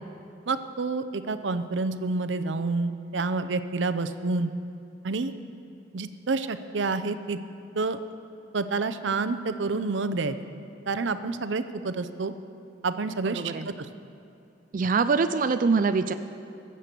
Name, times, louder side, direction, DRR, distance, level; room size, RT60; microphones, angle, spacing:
voice 1, 0.5-4.5 5.0-5.3 5.9-7.4 7.8-8.0 8.5-10.4 10.9-12.3 12.8-13.9, right 3 dB, 85° right, 11 dB, 0.7 m, -28 dB
voice 2, 13.2-13.7 14.7-16.1, right 4 dB, 50° right, 9 dB, 0.4 m, -24 dB
23.0 x 7.7 x 6.7 m, 2.5 s
head